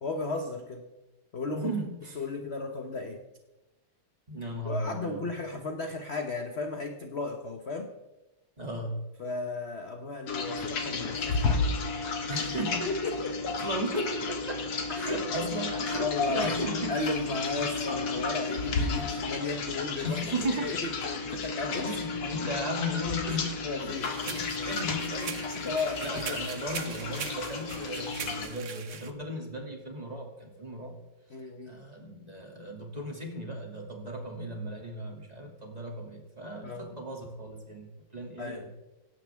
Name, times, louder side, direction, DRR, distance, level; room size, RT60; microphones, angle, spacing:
voice 1, 0.0-0.9 1.3-1.7 2.2-3.2 4.6-7.9 9.2-11.7 12.9-13.3 15.4-15.5 16.0-21.9 23.6-24.1 24.6-24.7 25.5-26.4 31.3-31.8 36.6-37.0 38.4-38.7, left 3 dB, 40° left, 4 dB, 1.0 m, -35 dB
voice 2, 1.5-2.2 4.3-5.3 8.6-9.0 12.3-13.2 13.6-14.7 14.9-16.9 20.0-20.7 21.7-23.9 24.2-25.6 26.0-31.0 31.4-38.7, equal, 20° right, 1 dB, 2.5 m, -36 dB
sound 1, 10.3-28.5, left 4 dB, 85° left, 2.6 m, -32 dB
sound 2, 24.0-29.1, right 6 dB, 50° right, 1.0 m, -41 dB
18.5 x 17.0 x 3.5 m, 1.0 s
omnidirectional pair, 2.4 m